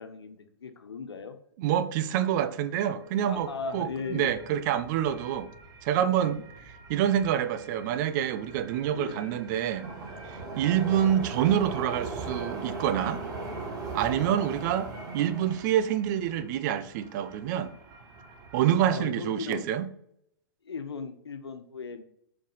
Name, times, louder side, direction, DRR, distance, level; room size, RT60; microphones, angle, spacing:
voice 1, 0.0-1.4 3.2-4.3 8.9-9.3 14.1-14.5 18.8-19.7 20.6-22.0, left 5 dB, 90° left, 1.3 m, -38 dB
voice 2, 1.6-5.5 5.8-9.9 10.3-13.2 13.9-14.9 15.1-17.7 18.5-19.9, right 10 dB, 50° right, 1.0 m, -27 dB
sound 1, 3.0-18.9, right 3 dB, 25° right, 3.5 m, -40 dB
7.6 x 5.8 x 5.7 m
hypercardioid pair, 125°, 13 cm